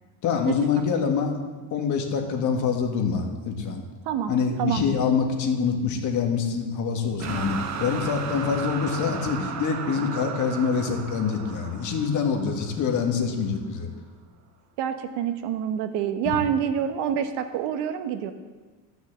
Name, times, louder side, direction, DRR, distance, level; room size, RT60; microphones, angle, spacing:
voice 1, 0.2-1.4 1.7-3.8 4.3-13.9, left 6 dB, 40° left, 3 dB, 1.8 m, -25 dB
sound 1, 7.2-13.2, right 6 dB, 40° right, 1.2 m, -35 dB
voice 2, 14.8-18.3, right 9 dB, 65° right, 8 dB, 1.1 m, -27 dB
13.0 x 6.2 x 7.4 m, 1.3 s
cardioid pair, 145°, 44 cm